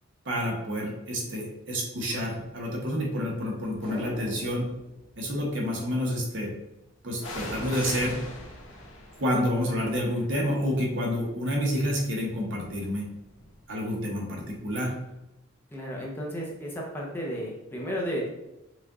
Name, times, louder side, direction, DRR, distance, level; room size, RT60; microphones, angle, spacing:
voice 1, 0.3-4.6 5.2-6.5 7.0-8.2 9.2-13.0 13.7-14.9, equal, 60° right, -1 dB, 1.1 m, -29 dB
sound 1, 2.5-2.6 3.3-4.3 7.2-14.8 15.1-15.2, left 1 dB, 80° left, 1.0 m, -43 dB
sound 2, 3.8-6.3 6.6-6.7, equal, 30° left, 1.3 m, -43 dB
voice 2, 15.7-18.3, equal, 10° left, -3 dB, 0.7 m, -33 dB
4.9 x 2.5 x 3.7 m, 0.93 s
head